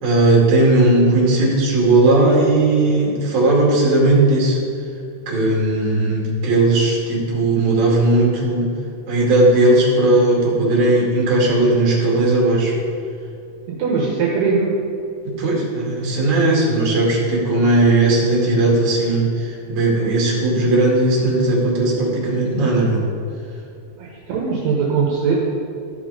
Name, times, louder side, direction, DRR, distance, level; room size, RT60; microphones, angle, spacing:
voice 1, 0.0-4.6 5.3-8.7 9.1-12.7 15.4-23.0, right 2 dB, 45° right, -4 dB, 3.2 m, -17 dB
voice 2, 13.8-14.7 24.0-25.3, right 5 dB, 70° right, -3 dB, 3.1 m, -20 dB
14.0 x 6.0 x 5.0 m, 2.4 s
omnidirectional pair, 5.2 m